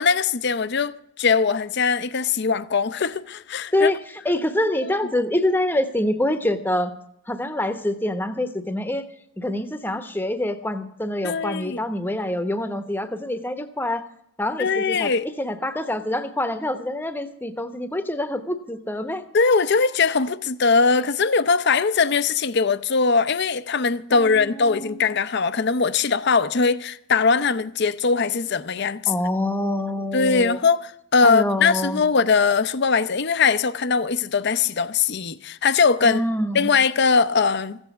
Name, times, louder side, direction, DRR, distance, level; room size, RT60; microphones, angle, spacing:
voice 1, 0.0-3.9 11.2-11.8 14.6-15.3 19.3-29.0 30.1-36.2 36.5-37.8, left 5 dB, 55° left, 0.6 m, -21 dB
voice 2, 4.2-7.0 7.3-9.0 9.4-14.1 14.4-19.2 24.1-25.1 29.1-30.6 31.2-32.0 36.0-36.7, left 1 dB, 10° left, 0.9 m, -26 dB
15.0 x 8.0 x 8.3 m
head